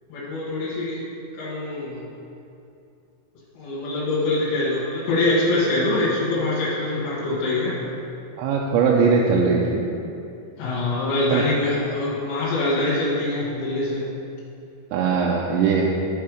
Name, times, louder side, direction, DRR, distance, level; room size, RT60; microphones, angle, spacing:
voice 1, 0.1-1.0 1.3-2.0 3.6-7.9 10.6-14.1, left 2 dB, 80° left, -9 dB, 3.8 m, -24 dB
voice 2, 8.4-9.8 11.3-11.4 14.9-15.9, right 5 dB, 85° right, -2 dB, 2.9 m, -20 dB
12.5 x 4.6 x 5.1 m, 2.7 s
omnidirectional pair, 5.2 m